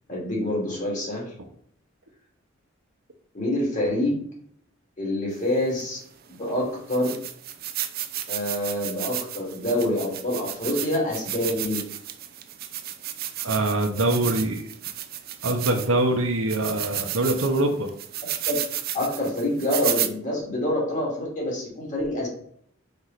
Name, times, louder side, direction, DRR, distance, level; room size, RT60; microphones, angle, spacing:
voice 1, 0.1-1.3 3.3-4.2 5.0-6.0 6.3-7.1 8.3-11.8 18.5-18.6 18.9-22.3, left 1 dB, 40° left, -3 dB, 2.8 m, -26 dB
sound 1, 5.8-5.9 6.5-6.6 6.9-16.0 16.5-20.1, right 12 dB, 50° right, 0.5 m, -32 dB
voice 2, 13.4-14.6 15.4-17.9, right 2 dB, 90° right, 3 dB, 1.0 m, -23 dB
5.3 x 4.8 x 4.2 m, 0.65 s
head